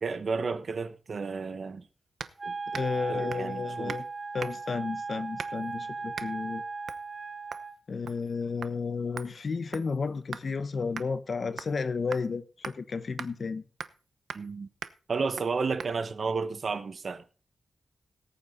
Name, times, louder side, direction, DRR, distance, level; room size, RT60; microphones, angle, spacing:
voice 1, 0.0-1.9 2.4-2.5 2.8-4.0 14.3-14.7 15.1-17.2, right 4 dB, 55° right, 1.2 m, -32 dB
sound 1, 2.2-2.4 2.7-3.0 3.3-3.5 3.9-4.1 4.4-4.7 5.4-5.7 6.1-6.3 6.9-7.1 7.5-7.7 8.1-8.3 8.6-8.7 9.2-10.5 11.0-11.1 11.6-11.8 12.1-12.3 12.6-12.8 13.2-13.3 13.8-14.0 14.3-14.5 14.8-15.0 15.4-15.5 15.8-15.9, right 7 dB, 85° right, 0.8 m, -40 dB
Wind instrument woodwind instrument, 2.4-7.8, right 4 dB, 30° right, 1.4 m, -37 dB
voice 2, 2.7-4.1 4.3-6.6 7.9-13.6, left 5 dB, 50° left, 1.1 m, -32 dB
18.5 x 8.6 x 4.0 m
wide cardioid pair, 105°, 0 cm